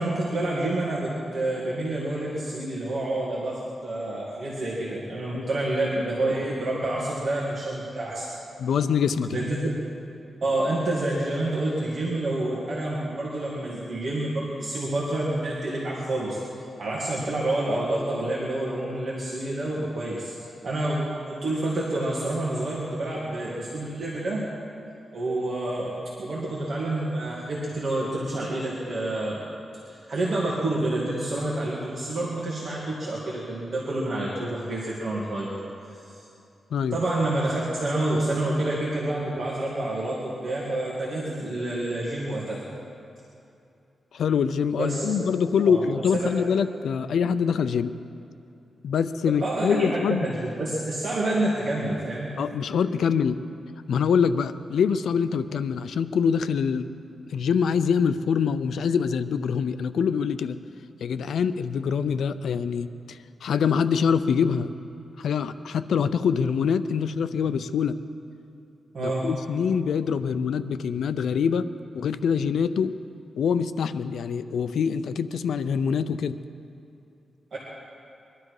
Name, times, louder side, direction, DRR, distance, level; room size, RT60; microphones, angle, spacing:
voice 1, 0.0-8.3 9.3-9.6 10.4-16.4 16.8-20.3 20.6-24.5 25.1-29.4 29.9-35.5 35.9-36.2 36.9-42.6 44.8-45.1 45.6-45.8 46.1-46.3 49.4-52.3 68.9-69.2 77.5-77.6, right 1 dB, 45° right, -6 dB, 2.4 m, -28 dB
voice 2, 8.6-9.5 36.7-37.0 44.1-47.9 48.8-50.3 52.4-53.4 53.9-56.9 57.3-60.6 61.0-64.7 65.2-68.0 69.0-71.7 71.9-73.0 73.4-76.4, left 6 dB, 85° left, 12 dB, 0.5 m, -24 dB
22.5 x 12.5 x 4.9 m, 2.7 s
wide cardioid pair, 170°, 0 cm